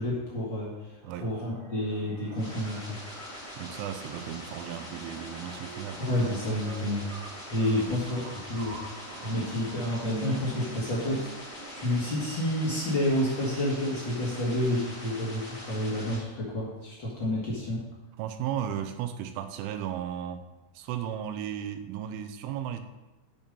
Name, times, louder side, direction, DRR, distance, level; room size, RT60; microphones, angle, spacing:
voice 1, 0.0-3.0 6.0-7.1 7.5-8.8 9.2-11.3 11.7-17.9, left 1 dB, 55° left, -5 dB, 1.2 m, -29 dB
sound 1, 1.0-15.0, right 5 dB, 70° right, 3.9 m, -46 dB
sound 2, 2.3-16.2, equal, 30° left, 1.5 m, -43 dB
voice 2, 3.6-6.0 7.8-7.9 9.4-9.5 18.2-20.5 20.7-22.8, right 10 dB, 85° right, 9 dB, 3.2 m, -35 dB
8.6 x 7.0 x 5.4 m, 1.1 s
omnidirectional pair, 5.4 m